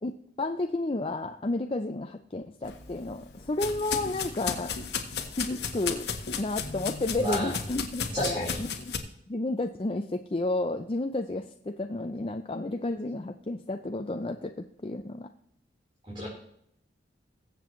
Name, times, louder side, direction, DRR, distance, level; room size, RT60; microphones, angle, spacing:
voice 1, 0.0-4.7 5.3-6.1 6.4-8.9 9.3-15.3, left 2 dB, 30° left, 6 dB, 0.5 m, -32 dB
sound 1, 2.6-9.0, left 6 dB, 65° left, 1.4 m, -35 dB
voice 2, 7.2-7.5 8.1-8.6 16.1-16.3, left 1 dB, 30° right, -6 dB, 4.1 m, -31 dB
21.5 x 7.7 x 3.1 m, 0.72 s
head